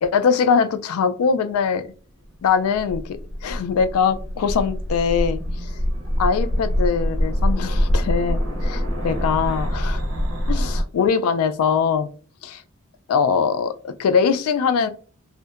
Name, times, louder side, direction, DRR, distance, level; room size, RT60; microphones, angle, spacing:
voice 1, 0.0-1.9 2.4-5.7 6.2-8.7 9.0-10.0 10.5-12.1 12.4-12.6 13.1-14.9, left 6 dB, 85° left, 11 dB, 0.3 m, -22 dB
sound 1, 2.5-10.8, equal, 85° right, 0.6 m, -24 dB
2.7 x 2.1 x 2.3 m, 0.40 s
head